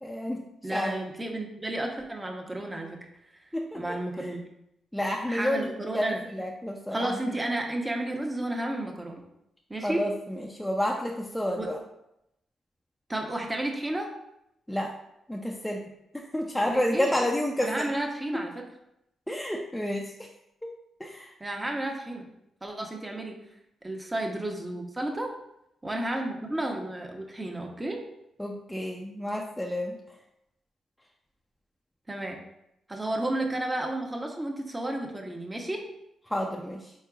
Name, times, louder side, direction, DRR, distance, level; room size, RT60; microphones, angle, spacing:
voice 1, 0.0-0.4 0.7-0.9 3.5-4.3 4.9-7.4 9.8-11.8 14.7-15.0 15.3-15.9 16.1-17.9 18.3-18.4 19.3-20.3 20.6-20.7 21.0-21.3 28.4-30.0 36.3-36.9, left 1 dB, 5° left, -1 dB, 0.5 m, -30 dB
voice 2, 0.6-3.0 3.7-4.5 5.3-6.2 6.9-9.2 9.7-10.0 11.6-11.7 13.1-14.1 16.6-17.2 17.6-18.6 21.4-22.3 22.6-23.4 23.8-25.3 25.8-28.0 32.1-32.4 32.9-35.8, right 1 dB, 20° right, 2 dB, 0.8 m, -32 dB
4.5 x 3.7 x 2.3 m, 0.83 s
hypercardioid pair, 45°, 0 cm